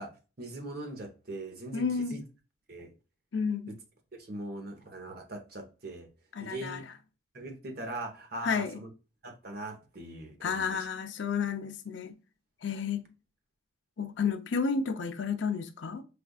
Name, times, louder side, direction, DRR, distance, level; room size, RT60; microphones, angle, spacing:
voice 1, 0.0-2.2 2.7-2.9 3.7-3.8 4.2-6.1 6.4-6.8 7.3-8.9 9.2-10.8, right 1 dB, 50° right, 0.9 m, -41 dB
voice 2, 1.7-2.2 3.3-3.7 6.3-6.8 8.4-8.8 10.4-12.1 12.6-13.0 14.0-16.0, left 5 dB, 70° left, 0.5 m, -31 dB
5.0 x 2.4 x 2.3 m
head